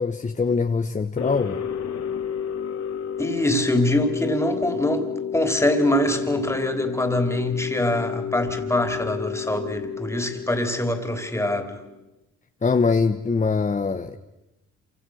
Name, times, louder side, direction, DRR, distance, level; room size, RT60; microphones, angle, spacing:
voice 1, 0.0-1.6 12.6-14.2, left 4 dB, 25° left, 7 dB, 1.2 m, -23 dB
sound 1, 1.2-12.0, left 7 dB, 60° left, 2.5 m, -31 dB
voice 2, 3.2-11.8, left 1 dB, 10° left, 6 dB, 3.6 m, -24 dB
27.5 x 25.0 x 6.5 m, 0.96 s
cardioid pair, 90°, 30 cm